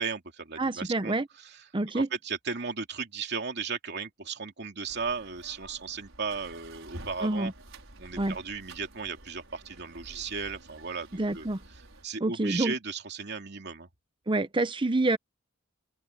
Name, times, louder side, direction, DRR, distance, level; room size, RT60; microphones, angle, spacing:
voice 1, 0.0-1.6 1.9-7.5 8.0-11.5 12.0-13.9, right 5 dB, 55° right, 2.8 m, -36 dB
voice 2, 0.6-1.3 1.7-2.1 7.2-7.5 8.2-8.4 11.1-11.6 12.2-12.7 14.3-15.2, right 2 dB, 25° right, 0.8 m, -27 dB
sound 1, 4.9-12.1, right 2 dB, 90° right, 5.6 m, -49 dB
open air
head